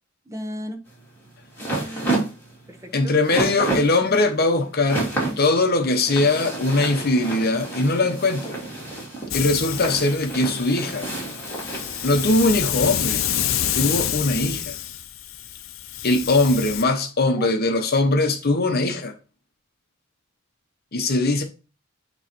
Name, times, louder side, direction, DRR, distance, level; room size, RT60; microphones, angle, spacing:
voice 1, 0.3-0.8 1.6-2.3 2.7-3.6 17.4-17.5, equal, 15° right, 1.1 m, -36 dB
sound 1, 0.9-12.6, right 2 dB, 10° left, 3.0 m, -30 dB
voice 2, 2.9-5.1 5.4-8.6 9.3-11.1 12.0-13.2 13.7-14.7 16.0-19.2 20.9-21.4, left 2 dB, 50° left, 0.9 m, -21 dB
Hiss, 9.3-16.8, left 10 dB, 75° left, 0.6 m, -28 dB
9.0 x 3.1 x 4.4 m
head